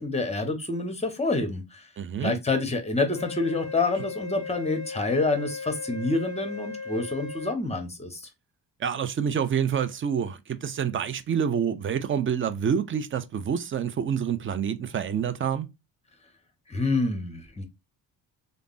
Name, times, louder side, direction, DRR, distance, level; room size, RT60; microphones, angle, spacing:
voice 1, 0.0-1.8 2.2-8.3 16.7-17.6, left 3 dB, 15° left, 0.8 m, -27 dB
voice 2, 2.0-2.4 8.8-15.7, right 8 dB, 30° right, 0.4 m, -27 dB
Wind instrument woodwind instrument, 3.1-7.6, left 4 dB, 40° left, 0.6 m, -37 dB
3.3 x 2.0 x 2.4 m
cardioid pair, 85°, 43 cm